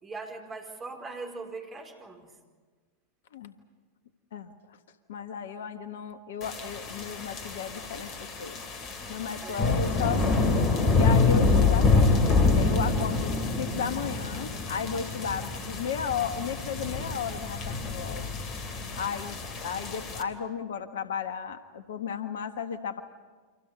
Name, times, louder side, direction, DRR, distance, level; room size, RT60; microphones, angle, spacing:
voice 1, 0.0-2.3 9.4-9.7, right 3 dB, 20° right, 2 dB, 4.5 m, -40 dB
voice 2, 4.3-4.8 5.1-8.6 9.1-10.6 10.9-12.2 12.6-18.2 19.0-23.0, left 7 dB, 60° left, 10 dB, 1.4 m, -34 dB
sound 1, 6.4-20.2, left 3 dB, 35° left, 2.9 m, -26 dB
29.5 x 26.0 x 5.4 m, 1.4 s
figure-of-eight pair, 90°, 0 cm